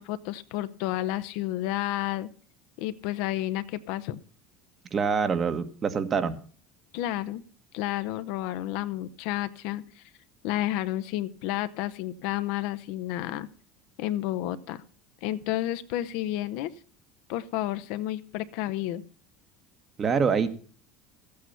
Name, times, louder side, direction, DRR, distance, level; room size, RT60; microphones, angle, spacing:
voice 1, 0.0-2.3 2.8-4.2 6.9-7.4 7.7-10.0 10.4-13.5 14.0-14.8 15.2-16.7 17.3-19.0, left 14 dB, 65° left, 13 dB, 0.8 m, -31 dB
voice 2, 4.9-6.4 20.0-20.5, right 6 dB, 35° right, 9 dB, 1.5 m, -25 dB
14.0 x 8.6 x 5.8 m, 0.44 s
hypercardioid pair, 75°, 0 cm